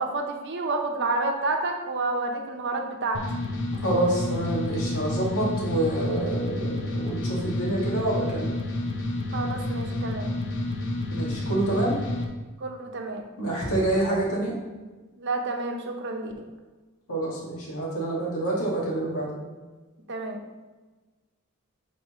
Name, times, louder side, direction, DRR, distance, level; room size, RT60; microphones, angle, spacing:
voice 1, 0.0-3.2 9.3-10.3 12.6-13.2 15.2-16.5 20.1-20.4, right 3 dB, 55° right, 3 dB, 0.9 m, -29 dB
sound 1, 3.1-12.2, left 2 dB, 55° left, 0.8 m, -30 dB
voice 2, 3.8-8.6 11.1-12.0 13.4-14.5 17.1-19.4, right 1 dB, 80° left, -3 dB, 2.0 m, -27 dB
9.6 x 4.2 x 3.1 m, 1.3 s
head